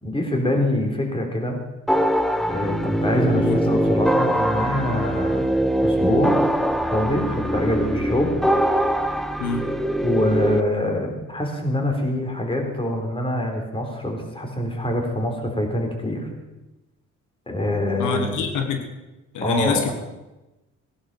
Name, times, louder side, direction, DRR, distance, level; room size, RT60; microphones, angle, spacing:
voice 1, 0.0-1.6 2.5-5.5 5.8-6.4 6.9-8.3 10.0-16.3 17.5-18.4 19.4-19.9, left 1 dB, 20° left, 2 dB, 3.9 m, -24 dB
sound 1, 1.9-10.6, equal, ahead, 1.0 m, -22 dB
voice 2, 18.0-18.8 19.3-19.9, left 5 dB, 85° left, 6 dB, 1.6 m, -25 dB
17.5 x 11.0 x 5.8 m, 1.0 s
cardioid pair, 90°, 30 cm